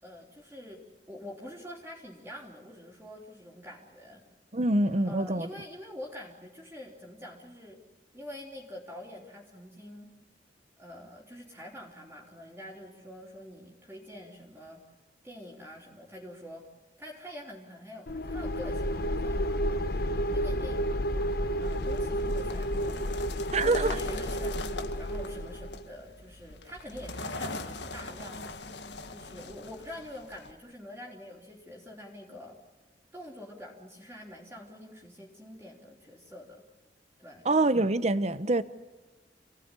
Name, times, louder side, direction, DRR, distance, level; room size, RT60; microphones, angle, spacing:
voice 1, 0.0-4.2 4.9-7.8 8.1-10.1 10.8-14.8 15.2-16.7 17.0-19.4 20.3-21.1 21.6-23.1 23.6-32.6 33.1-36.6 37.2-37.4, left 1 dB, 15° right, 3.5 m, -46 dB
voice 2, 4.5-5.5 23.5-24.0 37.4-38.6, right 2 dB, 40° right, 0.9 m, -25 dB
sound 1, 18.1-25.8, equal, 60° left, 1.2 m, -31 dB
sound 2, 21.6-30.5, left 3 dB, 80° left, 1.8 m, -41 dB
29.0 x 18.0 x 9.9 m
head